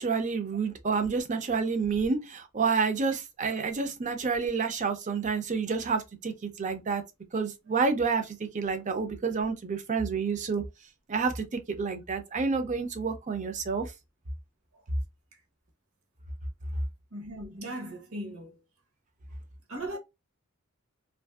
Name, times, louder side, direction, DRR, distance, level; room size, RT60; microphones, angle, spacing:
voice 1, 0.0-7.0 7.3-10.6 11.1-13.9, right 5 dB, 35° right, 0.5 m, -29 dB
voice 2, 17.1-18.6 19.7-20.0, right 1 dB, 75° right, 1.0 m, -38 dB
2.5 x 2.5 x 2.3 m
head